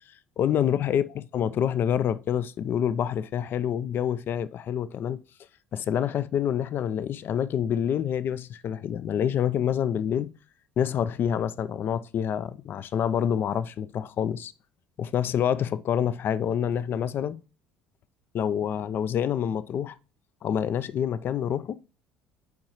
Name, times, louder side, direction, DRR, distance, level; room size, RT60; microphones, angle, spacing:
voice 1, 0.4-5.2 5.7-10.3 10.8-14.5 15.0-17.4 18.3-20.0 20.4-21.8, left 9 dB, 50° left, 0.4 m, -27 dB
7.0 x 4.7 x 3.0 m
hypercardioid pair, 65°, 5 cm